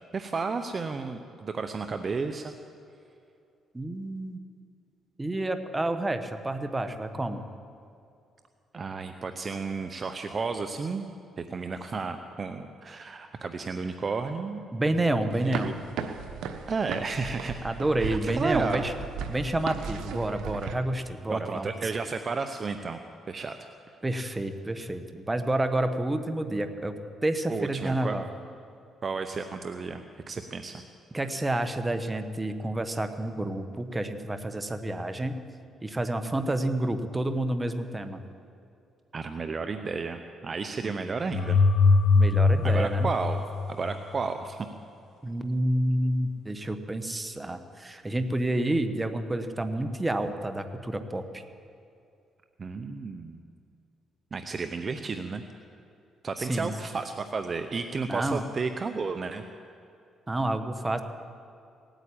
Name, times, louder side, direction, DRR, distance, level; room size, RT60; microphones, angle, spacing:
voice 1, 0.1-2.5 8.7-11.1 11.4-14.6 15.4-15.7 16.7-17.5 18.0-18.8 21.3-23.0 23.3-23.5 24.1-24.2 27.5-28.2 29.0-30.8 39.1-41.6 42.6-44.7 52.6-53.4 54.3-55.4 56.2-59.4, right 4 dB, 40° right, 7 dB, 0.7 m, -32 dB
voice 2, 3.7-4.4 5.2-7.4 14.7-15.8 17.6-18.9 19.3-21.7 24.0-28.3 31.1-35.4 35.8-38.2 40.8-41.2 42.1-43.1 45.2-51.4 56.4-56.7 58.1-58.4 60.3-61.0, right 1 dB, 15° right, 8 dB, 1.2 m, -29 dB
sound 1, 15.3-20.7, right 6 dB, 85° right, 1.1 m, -36 dB
sound 2, 41.3-44.2, left 4 dB, 70° left, 0.5 m, -22 dB
18.5 x 9.1 x 8.6 m, 2.5 s
cardioid pair, 90°, 0 cm